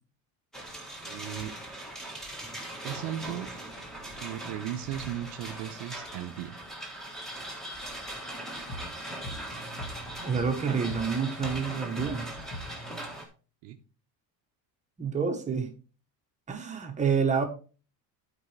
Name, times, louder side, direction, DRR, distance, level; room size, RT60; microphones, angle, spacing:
sound 1, 0.5-13.2, right 1 dB, ahead, 1.4 m, -40 dB
voice 1, 1.0-1.5 2.8-3.5 4.2-6.6 13.6-13.8, right 11 dB, 90° right, 3 dB, 1.0 m, -36 dB
sound 2, 8.7-13.2, equal, 40° left, 2.0 m, -42 dB
voice 2, 10.2-12.2 15.0-15.7 16.5-17.5, right 6 dB, 15° right, 4 dB, 1.2 m, -28 dB
12.0 x 4.6 x 3.2 m, 0.36 s
cardioid pair, 175°, 41 cm